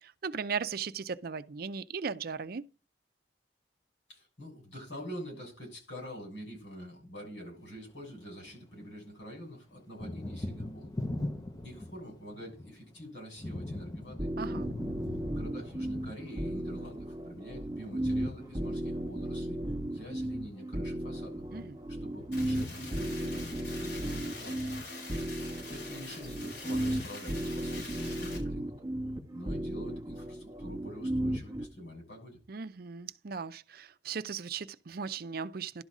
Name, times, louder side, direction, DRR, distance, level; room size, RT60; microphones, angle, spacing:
voice 1, 0.0-2.6 14.4-14.7 21.5-21.8 32.5-35.8, right 5 dB, 55° right, 0.5 m, -37 dB
voice 2, 4.1-10.9 11.6-14.3 15.3-19.6 19.9-21.4 21.9-24.6 25.7-28.7 29.3-32.4, equal, 90° left, 6.7 m, -46 dB
Thunder, 7.7-8.9 9.2-24.5, left 1 dB, 20° left, 0.8 m, -43 dB
sound 1, 14.2-31.6, right 1 dB, 20° right, 2.1 m, -35 dB
sound 2, 22.3-28.4, left 3 dB, 70° left, 5.3 m, -45 dB
11.5 x 4.0 x 6.0 m
head